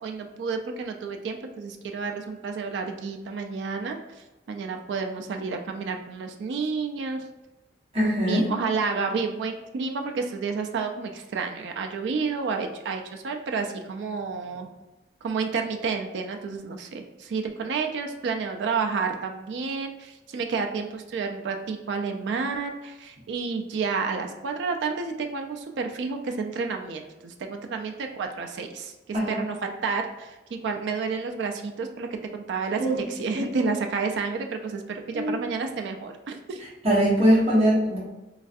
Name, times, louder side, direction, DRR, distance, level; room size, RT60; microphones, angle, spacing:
voice 1, 0.0-7.3 8.2-14.7 15.2-36.6, right 4 dB, 80° right, 4 dB, 0.3 m, -30 dB
voice 2, 7.9-8.4 29.1-29.4 32.8-33.0 33.3-33.5 35.1-35.4 36.8-38.0, equal, 35° right, -8 dB, 1.2 m, -21 dB
3.1 x 2.4 x 2.6 m, 1.1 s
head